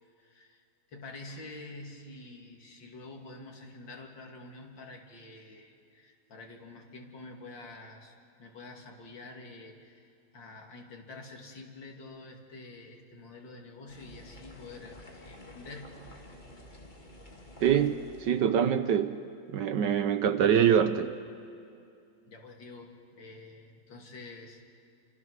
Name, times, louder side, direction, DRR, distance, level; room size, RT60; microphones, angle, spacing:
voice 1, 0.2-0.6 0.9-15.9 22.2-24.6, left 2 dB, 70° left, 1 dB, 3.2 m, -47 dB
sound 1, 13.9-18.5, left 1 dB, 25° left, 2.5 m, -50 dB
voice 2, 17.6-19.2 19.5-21.1, right 8 dB, 70° right, 10 dB, 1.4 m, -25 dB
29.5 x 26.5 x 6.4 m, 2.4 s
omnidirectional pair, 2.1 m